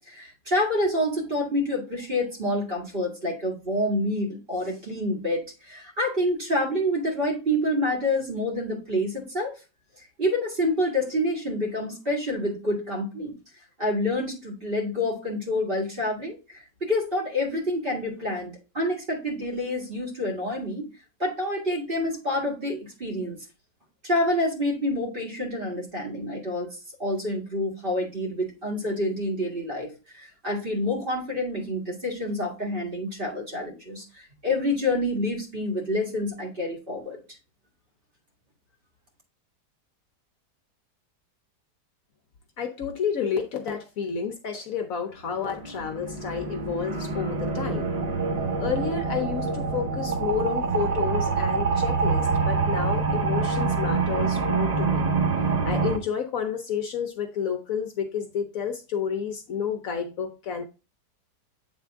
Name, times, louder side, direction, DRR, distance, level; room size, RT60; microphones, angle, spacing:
voice 1, 0.1-9.5 10.2-13.3 13.8-20.8 21.2-23.4 24.0-26.7 27.0-37.2, left 1 dB, 35° right, -2 dB, 2.0 m, -27 dB
voice 2, 42.6-47.9 48.6-55.0 55.6-60.6, left 7 dB, 65° left, 4 dB, 1.0 m, -30 dB
sound 1, 45.3-56.0, right 4 dB, 85° right, 0.3 m, -26 dB
8.4 x 3.6 x 3.4 m, 0.31 s
omnidirectional pair, 1.8 m